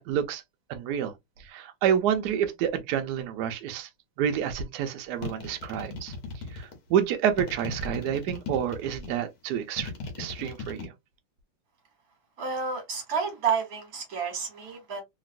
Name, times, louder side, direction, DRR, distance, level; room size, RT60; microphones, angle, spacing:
voice 1, 0.1-0.4 0.7-1.1 1.5-3.9 4.2-6.1 6.5-9.9 10.2-10.9, right 9 dB, 90° right, 0.8 m, -28 dB
sound 1, 5.2-6.8 7.4-9.1 9.8-10.9, left 4 dB, 55° left, 1.1 m, -37 dB
voice 2, 12.4-15.0, right 6 dB, 55° right, 1.1 m, -30 dB
3.0 x 2.9 x 2.4 m
omnidirectional pair, 2.4 m